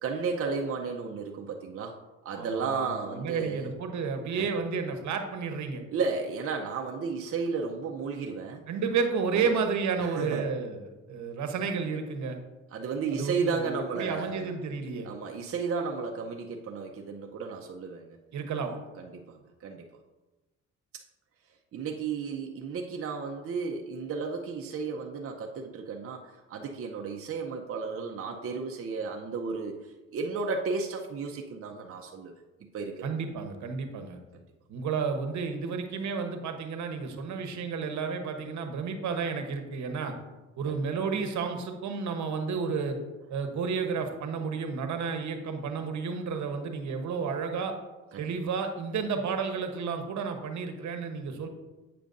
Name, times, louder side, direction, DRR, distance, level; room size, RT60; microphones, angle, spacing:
voice 1, 0.0-2.0 2.2-3.7 4.3-4.5 5.9-8.6 9.3-9.6 10.0-10.5 12.7-14.5 15.0-18.2 18.6-18.7 19.0-19.9 20.9-21.0 21.7-32.3 32.6-33.1 40.7-40.8 48.1-48.3, right 5 dB, 50° right, 2 dB, 0.7 m, -33 dB
voice 2, 2.3-5.8 8.7-12.4 13.1-15.1 18.3-18.7 33.0-34.2 34.7-40.2 40.6-43.0 43.3-47.7 48.2-51.5, right 5 dB, 70° right, 6 dB, 1.0 m, -31 dB
8.4 x 6.7 x 2.6 m, 1.1 s
cardioid pair, 90°, 30 cm